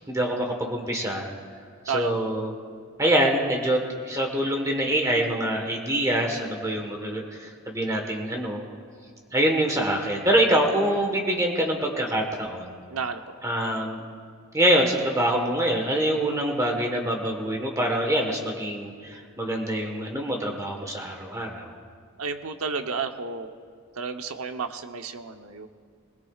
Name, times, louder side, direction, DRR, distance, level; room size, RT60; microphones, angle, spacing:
voice 1, 0.1-1.3 1.8-2.5 3.0-3.8 4.1-8.6 9.3-12.7 13.4-14.0 14.5-21.7, right 1 dB, 15° right, 1 dB, 1.3 m, -25 dB
voice 2, 12.9-13.2 22.2-23.5 24.0-25.7, right 5 dB, 80° right, 6 dB, 0.9 m, -31 dB
21.0 x 20.5 x 2.4 m, 2.1 s
head